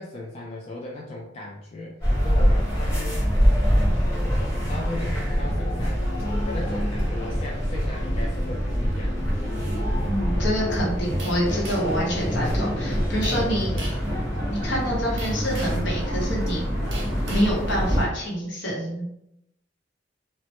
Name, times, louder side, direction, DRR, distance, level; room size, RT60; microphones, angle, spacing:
voice 1, 0.0-2.0 2.2-3.2 3.6-4.0 4.7-6.1 6.4-9.3 13.6-13.9, left 2 dB, 35° left, -2 dB, 0.3 m, -37 dB
sound 1, 2.0-18.0, equal, 15° left, 0.9 m, -25 dB
voice 2, 10.0-13.8 14.5-16.7 17.3-19.0, equal, 75° left, -4 dB, 0.9 m, -27 dB
sound 2, 11.2-12.0 13.2-13.5 13.8-14.1 15.2-15.9 16.9-17.5, right 2 dB, 80° right, 0.7 m, -38 dB
2.0 x 2.0 x 2.9 m, 0.81 s
head